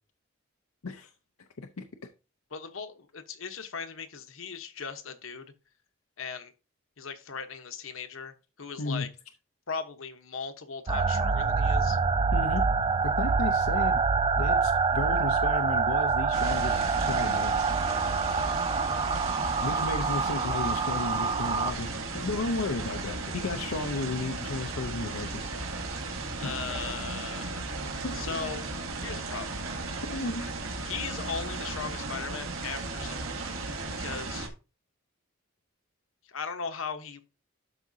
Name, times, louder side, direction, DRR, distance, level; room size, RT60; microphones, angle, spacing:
voice 1, 2.5-5.4 6.2-6.5 7.0-9.1 9.7-12.0 26.4-27.6 28.1-28.7 29.0-29.6 30.8-33.5 34.0-34.5 36.3-37.2, left 5 dB, 75° left, 1.0 m, -38 dB
voice 2, 8.8-9.1 12.3-12.6 13.0-14.0 14.4-17.6 19.6-25.5 26.4-26.6 27.9-28.4 30.1-30.5, left 3 dB, 90° left, 0.7 m, -34 dB
sound 1, 10.9-21.7, right 5 dB, 25° right, 0.4 m, -26 dB
sound 2, 16.3-34.5, right 3 dB, 75° right, 1.9 m, -35 dB
12.5 x 4.9 x 2.7 m
head